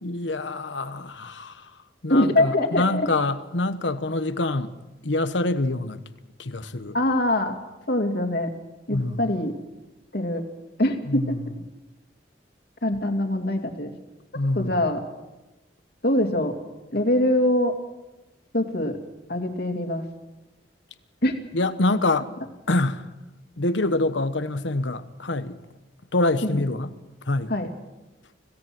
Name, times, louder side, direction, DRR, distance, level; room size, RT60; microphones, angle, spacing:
voice 1, 0.0-1.6 2.0-4.7 5.0-6.0 6.4-7.0 8.9-9.3 11.1-11.5 14.3-14.8 21.5-22.3 22.7-23.0 23.6-25.6 26.1-26.9 27.3-27.5, left 2 dB, 80° left, 1.2 m, -25 dB
voice 2, 2.1-3.1 6.9-7.5 7.9-8.5 8.9-9.5 10.1-10.4 10.8-11.4 12.8-13.9 14.5-15.0 16.0-16.5 16.9-17.7 18.5-19.0 19.3-20.0 21.2-21.3 26.4-26.6 27.5-27.7, left 1 dB, 60° left, 2.6 m, -23 dB
26.0 x 17.0 x 6.2 m
head